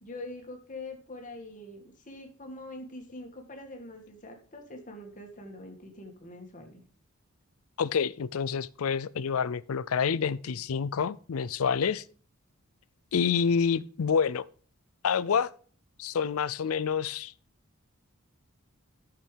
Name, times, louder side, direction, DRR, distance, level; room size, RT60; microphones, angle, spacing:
voice 1, 0.0-6.8 10.5-10.6, left 2 dB, 35° left, 2.0 m, -44 dB
voice 2, 7.8-12.0 13.1-14.4 15.0-15.5 16.0-17.3, left 6 dB, 75° left, 0.5 m, -28 dB
13.0 x 6.7 x 3.4 m
head